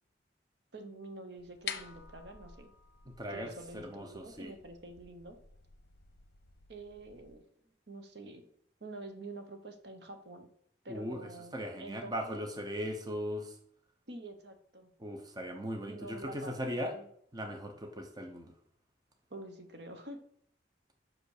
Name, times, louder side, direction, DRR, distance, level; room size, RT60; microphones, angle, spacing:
voice 1, 0.7-2.7 3.3-5.4 6.7-7.5 7.9-8.5 8.8-10.5 10.8-12.4 14.1-14.9 15.9-17.1 19.3-20.2, right 2 dB, 65° right, 7 dB, 1.0 m, -47 dB
sound 1, 1.4-7.3, left 8 dB, 55° left, 0.7 m, -49 dB
voice 2, 3.2-4.5 10.9-13.6 15.0-16.9 17.3-18.5, equal, 20° right, 4 dB, 0.9 m, -39 dB
5.9 x 5.3 x 6.5 m, 0.68 s
head